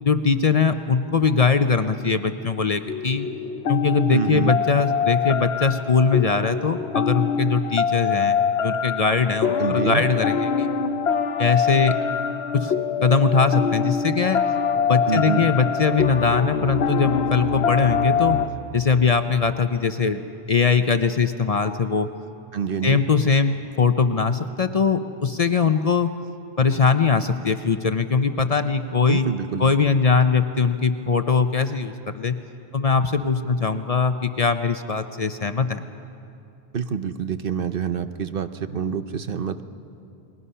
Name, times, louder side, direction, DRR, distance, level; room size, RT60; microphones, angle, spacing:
voice 1, 0.0-3.3 3.7-10.7 11.4-12.0 12.5-12.7 13.0-14.4 14.7-18.4 18.7-20.2 20.5-22.1 22.8-26.1 26.6-29.3 29.6-32.4 32.7-35.8, left 5 dB, 40° left, 9 dB, 0.7 m, -21 dB
sound 1, 2.9-18.5, left 6 dB, 90° left, 1.1 m, -24 dB
voice 2, 4.1-4.6 9.6-10.0 15.1-15.5 22.5-23.1 29.1-29.7 36.7-39.6, right 7 dB, 65° right, 10 dB, 1.0 m, -26 dB
29.5 x 21.0 x 5.6 m, 2.6 s
omnidirectional pair, 1.0 m